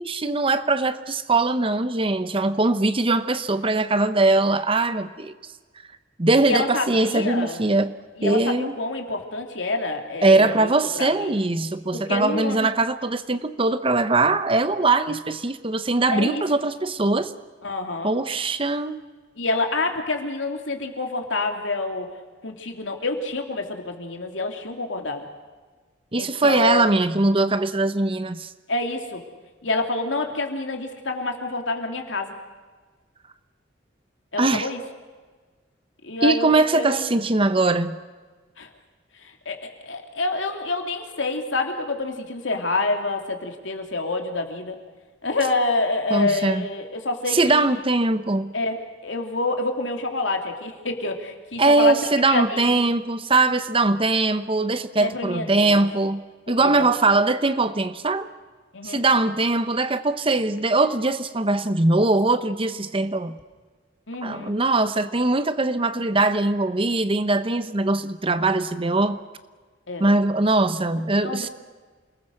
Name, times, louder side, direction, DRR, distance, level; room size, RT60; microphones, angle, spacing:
voice 1, 0.0-5.3 6.2-7.9 8.2-8.7 10.2-17.3 18.0-19.0 26.1-28.5 34.4-34.7 36.2-38.0 46.1-46.7 47.3-48.5 51.6-56.2 56.5-58.3 58.8-63.4 64.2-69.2 70.0-71.5, right 2 dB, 30° right, 12 dB, 0.9 m, -21 dB
voice 2, 6.4-7.6 8.2-11.3 11.9-12.7 16.1-16.6 17.6-18.1 19.4-22.1 22.4-25.3 26.1-26.9 28.7-29.2 29.6-32.4 34.3-34.8 36.0-37.1 38.6-38.7 39.1-44.8 45.2-47.7 48.5-52.8 55.0-55.9 56.5-56.9 58.7-59.0 64.1-64.5 69.9-70.1 71.2-71.5, left 2 dB, 75° left, 4 dB, 2.9 m, -27 dB
28.0 x 20.0 x 6.6 m, 1.4 s
head